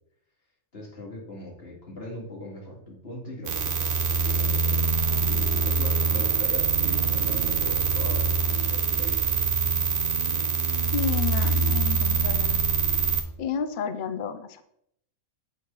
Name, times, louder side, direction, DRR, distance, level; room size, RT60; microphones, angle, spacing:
voice 1, 0.7-4.8 5.3-9.3, left 1 dB, 45° left, -3 dB, 2.4 m, -40 dB
sound 1, 3.5-13.2, right 5 dB, 45° right, 0.8 m, -24 dB
voice 2, 10.9-12.6 13.4-14.6, left 7 dB, 75° left, 10 dB, 0.4 m, -31 dB
7.7 x 4.5 x 5.3 m, 0.75 s
omnidirectional pair, 1.5 m